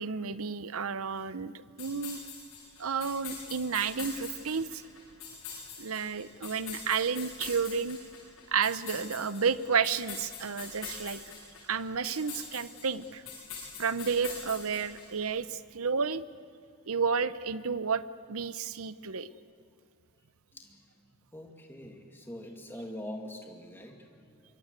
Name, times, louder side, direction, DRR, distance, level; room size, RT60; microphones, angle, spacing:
voice 1, 0.0-2.2 2.8-4.8 5.8-8.0 8.5-11.2 11.7-13.2 13.8-16.2 16.9-18.0 18.3-19.3, right 6 dB, 75° right, 14 dB, 0.8 m, -31 dB
sound 1, 1.8-15.3, left 5 dB, 65° left, 7.9 m, -44 dB
voice 2, 20.5-20.9 21.3-24.4, left 1 dB, 10° left, 2 dB, 2.4 m, -44 dB
26.0 x 22.5 x 8.4 m, 2.1 s
head